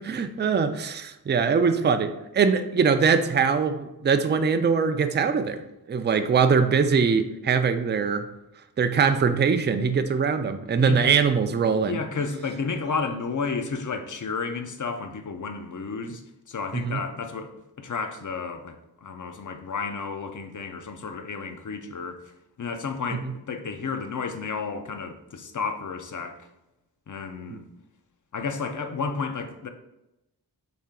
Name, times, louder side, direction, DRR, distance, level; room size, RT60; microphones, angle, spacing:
voice 1, 0.0-5.6 5.9-8.3 8.8-12.0 16.7-17.0 23.1-23.2 27.5-27.6, right 5 dB, 30° right, 9 dB, 0.3 m, -22 dB
voice 2, 11.8-22.3 22.6-26.5 27.1-27.7 28.3-29.7, left 5 dB, 50° left, 7 dB, 0.6 m, -32 dB
4.2 x 3.3 x 3.7 m, 0.91 s
wide cardioid pair, 60°, 39 cm